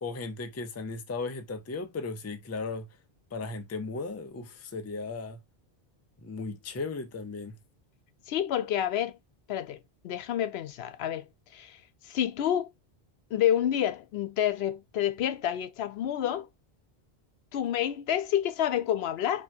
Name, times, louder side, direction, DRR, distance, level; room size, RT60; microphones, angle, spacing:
voice 1, 0.0-2.9 3.3-5.4 6.2-7.6, left 3 dB, 25° left, 0.3 m, -36 dB
voice 2, 8.3-9.2 9.5-12.7 13.3-16.5 17.5-19.4, left 10 dB, 80° left, 0.8 m, -29 dB
4.3 x 3.0 x 2.7 m
omnidirectional pair, 1.0 m